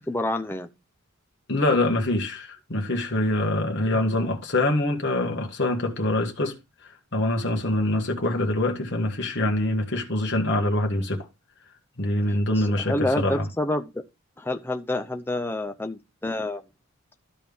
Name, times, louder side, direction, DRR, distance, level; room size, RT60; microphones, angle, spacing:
voice 1, 0.1-0.7 4.2-4.3 12.6-14.0 14.4-16.6, left 1 dB, 10° left, 0.6 m, -28 dB
voice 2, 1.5-11.3 12.0-13.5, left 1 dB, 55° left, 1.5 m, -25 dB
13.0 x 4.4 x 3.5 m
head